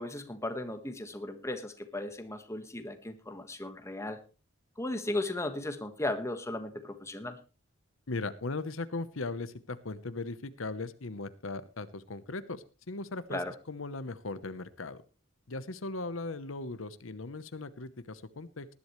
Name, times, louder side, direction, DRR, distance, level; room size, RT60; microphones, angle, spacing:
voice 1, 0.0-4.2 4.8-7.4 13.3-13.5, left 1 dB, 15° left, 8 dB, 1.5 m, -36 dB
voice 2, 8.1-13.4 13.7-15.0 15.5-18.7, left 3 dB, 75° left, 13 dB, 1.0 m, -38 dB
19.0 x 11.5 x 3.2 m, 0.33 s
head